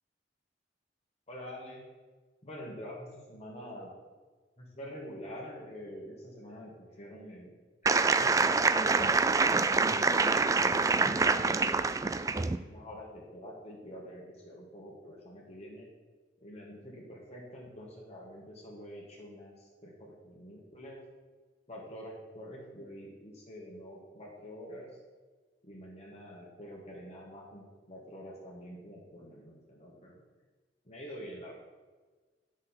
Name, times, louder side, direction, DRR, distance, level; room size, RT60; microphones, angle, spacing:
voice 1, 1.3-1.8 2.4-3.9 4.6-7.6 7.8-9.1 9.8-11.8 12.7-15.9 16.4-21.0 21.7-25.0 25.6-30.2 30.8-31.5, equal, 35° left, -2 dB, 1.5 m, -46 dB
sound 1, 7.9-12.6, right 4 dB, 20° right, 0.3 m, -26 dB
9.9 x 6.3 x 4.3 m, 1.4 s
head